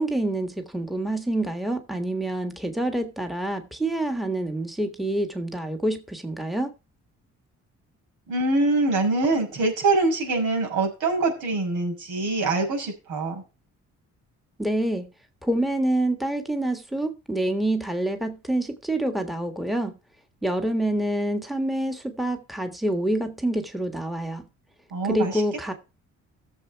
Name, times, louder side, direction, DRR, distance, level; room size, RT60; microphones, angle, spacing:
voice 1, 0.0-6.7 14.6-15.1 15.4-20.0 20.4-24.4 25.0-25.7, right 1 dB, ahead, 1.6 m, -27 dB
voice 2, 8.3-13.4 24.9-25.3, right 3 dB, 80° right, 5.7 m, -24 dB
14.0 x 7.2 x 4.7 m
cardioid pair, 90°, 30 cm